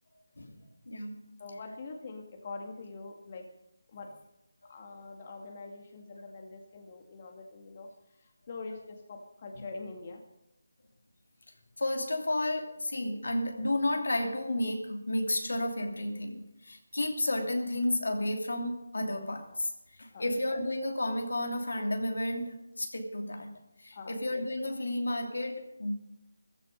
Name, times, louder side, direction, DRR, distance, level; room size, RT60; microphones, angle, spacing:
voice 1, 0.9-1.3 4.6-4.7 11.8-23.5 23.8-25.9, left 1 dB, 80° left, 2.7 m, -32 dB
voice 2, 1.4-3.4 3.9-4.1 4.7-7.9 8.2-10.2 20.1-20.3 23.9-24.2, left 3 dB, 35° left, 2.0 m, -44 dB
15.0 x 15.0 x 5.3 m
figure-of-eight pair, 165°, 0 cm